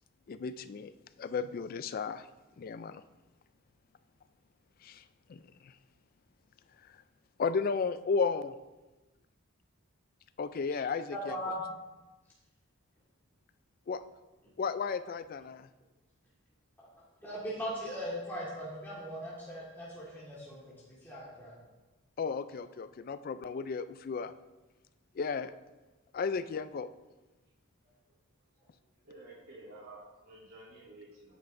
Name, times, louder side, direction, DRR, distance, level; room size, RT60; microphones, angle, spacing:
voice 1, 0.3-0.9 1.2-2.3 2.6-3.0 4.8-5.0 5.3-5.7 7.4-8.6 10.4-11.4 13.9-14.0 14.6-15.7 22.2-24.3 25.2-25.5 26.1-26.9, left 5 dB, 45° left, 13 dB, 0.3 m, -34 dB
voice 2, 11.1-11.6 17.2-21.5, equal, 10° left, -8 dB, 1.7 m, -39 dB
voice 3, 27.8-28.1 28.6-28.7 29.0-31.3, right 2 dB, 70° right, -12 dB, 3.0 m, -52 dB
9.2 x 8.8 x 2.6 m, 1.1 s
head